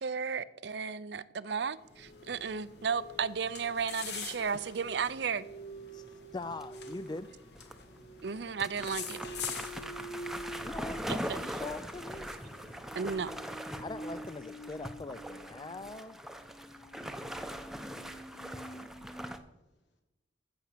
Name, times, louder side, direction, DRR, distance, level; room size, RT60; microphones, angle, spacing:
voice 1, 0.0-5.4 8.2-9.2 11.1-11.2 11.4-11.6 12.9-13.3, right 6 dB, 70° right, 0.5 m, -34 dB
sound 1, 1.5-19.4, right 2 dB, 40° left, 1.5 m, -49 dB
sound 2, 1.8-13.6, left 7 dB, 65° left, 1.5 m, -47 dB
voice 2, 6.3-7.3 10.6-12.3 13.8-16.2, left 3 dB, 25° left, 0.3 m, -42 dB
sound 3, 6.5-7.2 7.6-7.7 8.2-8.3 8.6-19.4, equal, ahead, 0.7 m, -41 dB
voice 3, 17.7-20.0, equal, 85° left, 3.0 m, -76 dB
14.5 x 6.8 x 6.7 m
head